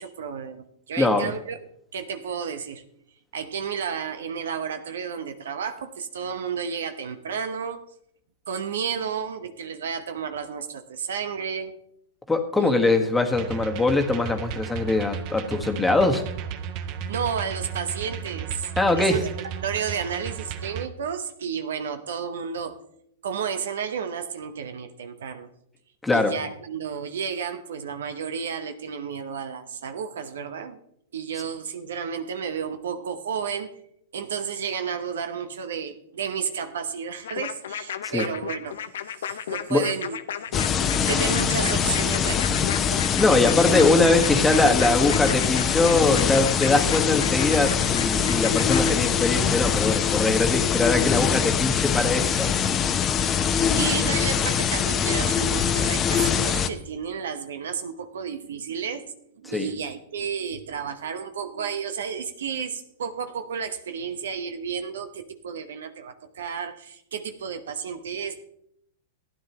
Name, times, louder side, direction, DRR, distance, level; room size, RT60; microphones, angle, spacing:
voice 1, 0.0-1.6 1.9-2.8 3.3-7.8 8.5-11.8 12.6-13.1 17.1-19.3 19.6-22.8 23.2-25.5 26.1-30.8 31.1-33.7 34.1-38.8 39.2-40.2 40.4-42.6 53.8-59.0 59.4-68.4, right 6 dB, 75° right, 9 dB, 1.0 m, -32 dB
voice 2, 1.0-1.3 12.3-16.2 18.8-19.2 26.0-26.3 38.0-38.2 39.7-39.8 43.2-52.5 59.5-59.7, left 2 dB, 10° left, 5 dB, 1.4 m, -22 dB
sound 1, 13.3-20.9, right 8 dB, 45° right, 0.8 m, -34 dB
sound 2, 37.2-48.9, left 9 dB, 75° left, 0.7 m, -34 dB
sound 3, 40.5-56.7, left 7 dB, 30° left, 0.8 m, -23 dB
15.0 x 10.0 x 3.0 m, 0.74 s
hypercardioid pair, 110°, 0 cm